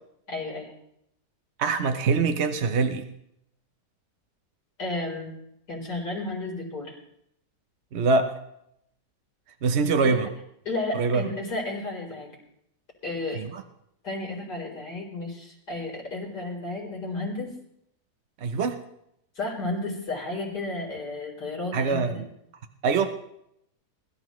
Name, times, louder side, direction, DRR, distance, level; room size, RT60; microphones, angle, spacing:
voice 1, 0.3-0.7 4.8-5.3 5.7-7.0 10.0-10.2 10.7-12.3 13.0-13.4 14.0-17.5 19.3-22.2, left 2 dB, 90° left, -2 dB, 4.5 m, -32 dB
voice 2, 1.6-3.1 7.9-8.3 9.6-10.3 10.9-11.2 13.4-13.6 18.4-18.8 21.7-22.3 22.8-23.1, right 4 dB, 50° right, 7 dB, 0.9 m, -24 dB
21.5 x 13.5 x 3.1 m, 0.77 s
omnidirectional pair, 1.7 m